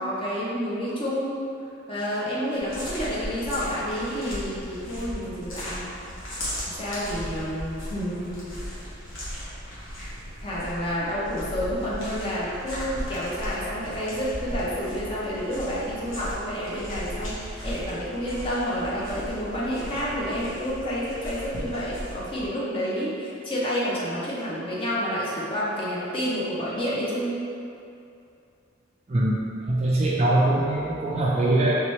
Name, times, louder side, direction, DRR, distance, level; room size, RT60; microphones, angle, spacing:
voice 1, 0.0-1.4 1.9-5.9 6.7-8.5 10.4-27.4, equal, 25° left, -7 dB, 0.6 m, -29 dB
sound 1, 2.6-22.5, equal, 70° left, 1.1 m, -37 dB
voice 2, 29.7-31.8, right 1 dB, 30° right, -5 dB, 0.3 m, -22 dB
3.4 x 2.9 x 3.1 m, 2.6 s
head